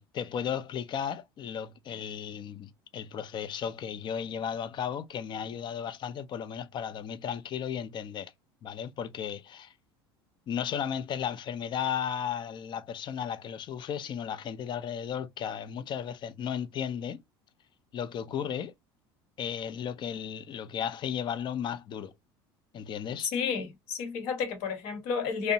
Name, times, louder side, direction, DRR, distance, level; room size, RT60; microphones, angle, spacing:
voice 1, 0.0-8.3 8.6-9.7 10.5-17.2 17.9-18.7 19.4-22.1 22.7-23.3, left 8 dB, 40° left, 0.4 m, -35 dB
voice 2, 23.3-25.5, left 6 dB, 70° left, 1.0 m, -31 dB
2.7 x 2.0 x 2.6 m
supercardioid pair, 90°, 12 cm